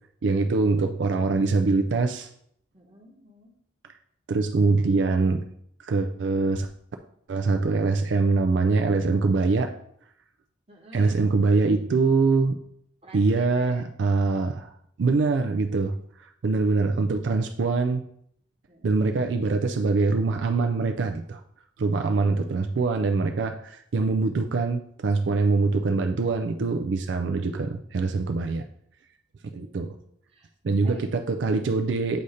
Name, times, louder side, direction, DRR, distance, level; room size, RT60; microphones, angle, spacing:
voice 1, 0.2-2.3 4.3-5.4 5.8-6.7 7.3-9.7 10.9-12.6 13.1-14.7 15.0-15.9 16.2-18.0 18.8-21.4 21.8-28.6 29.5-29.9 30.6-32.2, right 3 dB, 70° right, 6 dB, 0.4 m, -23 dB
voice 2, 2.7-3.6 10.7-11.2 13.0-13.8 18.7-19.0 29.4-30.5 30.8-31.1, right 1 dB, 30° right, 1 dB, 1.1 m, -50 dB
7.8 x 2.7 x 4.9 m, 0.69 s
head